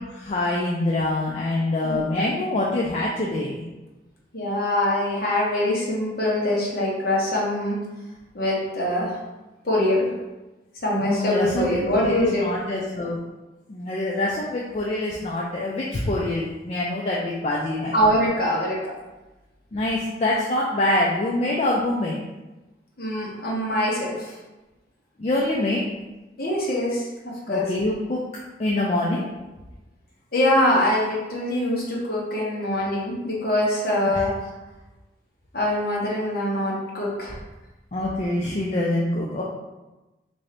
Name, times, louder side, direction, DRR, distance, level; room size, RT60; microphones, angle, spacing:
voice 1, 0.1-3.7 11.0-13.2 13.7-18.0 19.7-22.2 25.2-25.8 27.5-28.2 28.6-29.3 34.1-34.2 37.9-39.4, left 1 dB, 35° left, -3 dB, 0.4 m, -25 dB
voice 2, 4.3-7.8 8.3-9.2 9.6-10.1 10.8-12.5 17.9-18.9 23.0-24.3 26.4-27.1 27.5-27.7 30.3-34.3 35.5-37.4, left 1 dB, 50° left, -4 dB, 1.0 m, -23 dB
3.7 x 2.7 x 3.3 m, 1.1 s
head